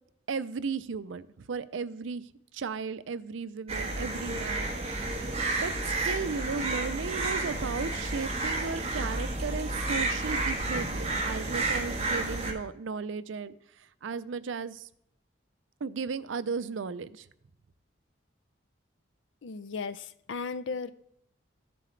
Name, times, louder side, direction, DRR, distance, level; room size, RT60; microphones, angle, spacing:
voice 1, 0.3-2.2 2.5-4.7 5.6-13.6 14.0-14.9 15.8-17.3, right 5 dB, 80° right, 14 dB, 0.5 m, -35 dB
sound 1, 3.7-12.5, right 2 dB, 30° right, 1.3 m, -31 dB
voice 2, 19.4-20.9, left 4 dB, 75° left, 13 dB, 0.5 m, -36 dB
14.5 x 7.7 x 3.2 m, 0.74 s
head